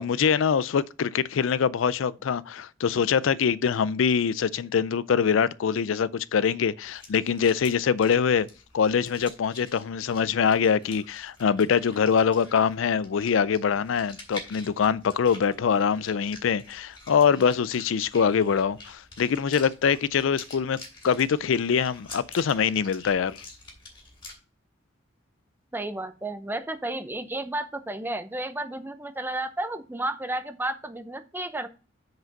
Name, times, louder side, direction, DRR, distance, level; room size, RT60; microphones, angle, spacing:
voice 1, 0.0-8.5 8.7-20.8 21.0-23.4, left 7 dB, 70° left, 0.4 m, -24 dB
sound 1, 6.8-24.3, left 2 dB, 25° left, 2.7 m, -47 dB
voice 2, 25.7-31.7, right 1 dB, 10° right, 0.7 m, -32 dB
6.1 x 5.0 x 5.2 m
head